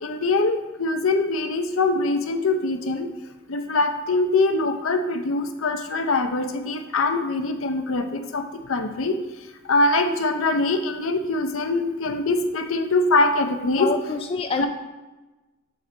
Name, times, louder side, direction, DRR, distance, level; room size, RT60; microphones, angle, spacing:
voice 1, 0.0-3.1 3.5-9.2 9.7-13.9 14.6-14.7, left 2 dB, 65° left, 7 dB, 0.6 m, -23 dB
voice 2, 13.8-14.7, left 4 dB, 25° left, 4 dB, 0.3 m, -26 dB
7.9 x 3.9 x 4.4 m, 1.1 s
head